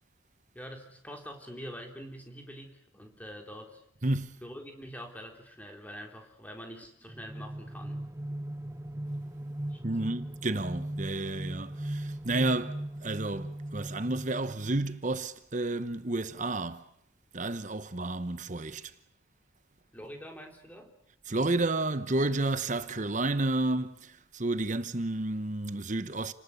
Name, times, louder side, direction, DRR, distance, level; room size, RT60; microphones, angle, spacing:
voice 1, 0.5-3.8 4.4-8.0 9.7-10.1 19.9-20.9, equal, 10° left, 3.6 m, -45 dB
voice 2, 4.0-4.3 9.8-16.8 17.3-18.9 21.3-26.3, right 2 dB, 40° right, 1.0 m, -31 dB
sound 1, 7.1-15.0, right 1 dB, 15° right, 1.0 m, -39 dB
30.0 x 19.5 x 8.5 m
head